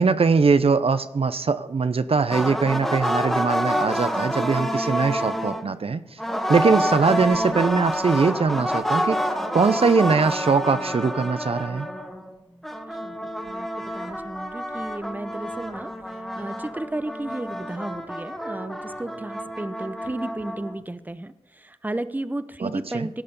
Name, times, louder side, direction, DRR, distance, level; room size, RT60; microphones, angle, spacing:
voice 1, 0.0-6.0 6.5-9.2 9.5-11.9 22.6-23.1, right 4 dB, 60° right, 12 dB, 0.5 m, -21 dB
sound 1, 2.3-5.7 6.2-12.3 12.6-20.8, equal, 5° left, 1.3 m, -28 dB
voice 2, 12.9-15.9 16.2-23.2, right 1 dB, 15° right, 13 dB, 0.6 m, -33 dB
16.5 x 6.7 x 5.3 m, 1.0 s
cardioid pair, 45°, 11 cm